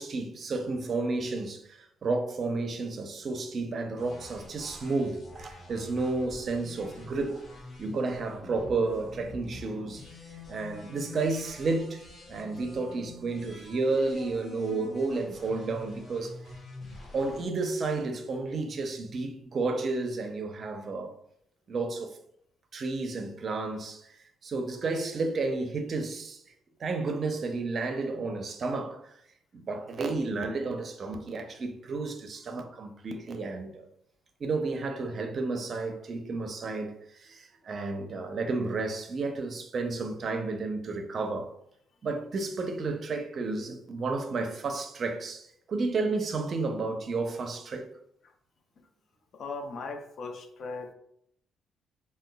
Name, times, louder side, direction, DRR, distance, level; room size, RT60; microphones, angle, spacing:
voice 1, 0.0-7.5 7.8-10.0 10.3-12.0 12.3-16.4 17.1-21.2 21.7-22.2 22.7-26.4 26.8-29.1 29.5-33.9 34.4-41.5 42.0-47.9, right 3 dB, 50° right, 0.5 m, -32 dB
sound 1, 4.0-17.5, left 2 dB, 45° left, 1.0 m, -47 dB
voice 2, 49.3-50.9, left 3 dB, 60° left, 0.5 m, -38 dB
4.9 x 2.1 x 2.2 m
cardioid pair, 90°, 0 cm